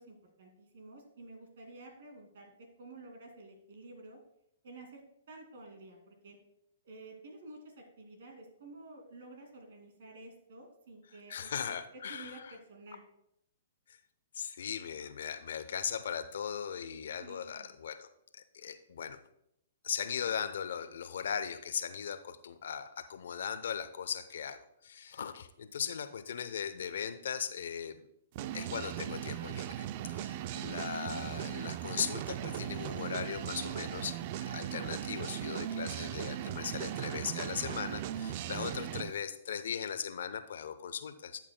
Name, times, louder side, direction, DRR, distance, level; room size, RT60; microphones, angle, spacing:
voice 1, 0.0-4.2 4.6-5.0 5.3-6.4 6.8-13.0 17.2-17.7, right 2 dB, 65° right, 3 dB, 2.4 m, -51 dB
voice 2, 11.3-12.5 14.3-19.2 19.8-28.1 28.5-41.4, left 7 dB, 70° left, 12 dB, 0.7 m, -38 dB
sound 1, 28.4-39.1, right 11 dB, 45° right, 0.4 m, -38 dB
12.5 x 7.4 x 2.2 m, 0.77 s
hypercardioid pair, 130°, 0 cm